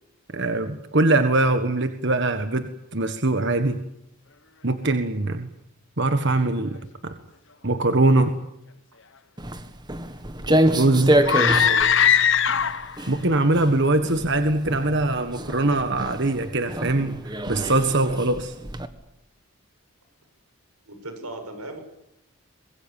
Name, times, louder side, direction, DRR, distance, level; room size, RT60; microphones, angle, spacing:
voice 1, 0.3-3.8 4.6-5.5 6.0-6.8 7.0-7.1 7.6-8.3 10.5-11.1 13.1-17.2 17.5-18.5, right 2 dB, 50° right, 8 dB, 1.6 m, -22 dB
Walk footsteps, 9.4-18.9, right 1 dB, 20° right, 1.6 m, -27 dB
voice 2, 11.0-11.9 20.9-21.8, right 1 dB, 90° right, 7 dB, 7.2 m, -36 dB
sound 1, 11.2-13.0, left 8 dB, 55° left, 1.3 m, -19 dB
25.5 x 21.0 x 9.1 m, 0.83 s
head